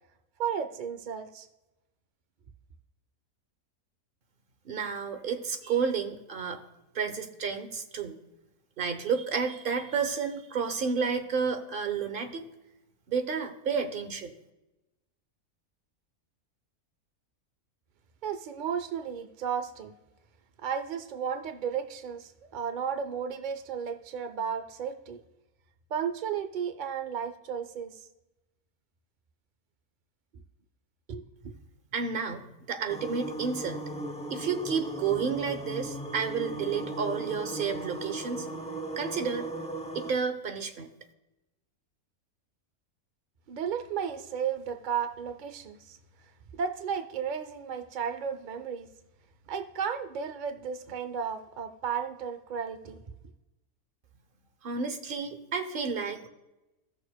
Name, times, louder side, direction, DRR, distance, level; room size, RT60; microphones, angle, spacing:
voice 1, 0.4-1.5 18.2-20.0 20.6-25.2 25.9-28.0 31.1-31.5 43.5-46.0 46.5-48.9 49.5-53.0, right 7 dB, 75° right, 8 dB, 0.4 m, -34 dB
voice 2, 4.6-6.6 6.9-8.2 8.8-12.5 13.1-14.3 31.9-33.8 34.3-38.5 39.0-39.5 39.9-40.9 54.6-56.3, right 6 dB, 45° right, 8 dB, 0.8 m, -31 dB
sound 1, 32.9-40.1, right 1 dB, 10° left, 0.3 m, -37 dB
16.5 x 6.5 x 2.2 m, 0.99 s
omnidirectional pair, 1.6 m